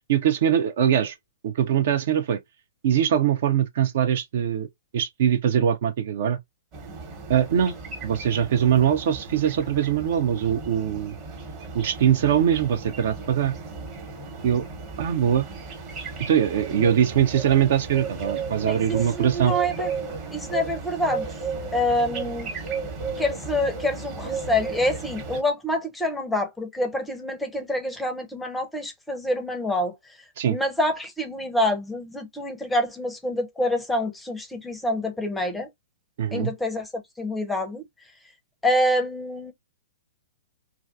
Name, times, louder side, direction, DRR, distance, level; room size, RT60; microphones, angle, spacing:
voice 1, 0.1-1.2 1.4-2.4 2.8-4.7 4.9-6.4 7.3-7.7 8.0-11.1 11.7-13.5 14.4-14.6 15.0-15.5 16.2-19.6 30.4-30.6 36.2-36.5, right 9 dB, 50° right, 0.3 m, -22 dB
sound 1, 6.7-25.4, right 4 dB, 30° right, 1.0 m, -35 dB
voice 2, 18.6-19.9 20.3-21.3 21.7-22.5 23.2-29.9 30.5-35.7 36.3-37.8 38.6-39.5, left 1 dB, 5° left, 0.5 m, -26 dB
2.4 x 2.2 x 2.4 m
figure-of-eight pair, 110°, 0 cm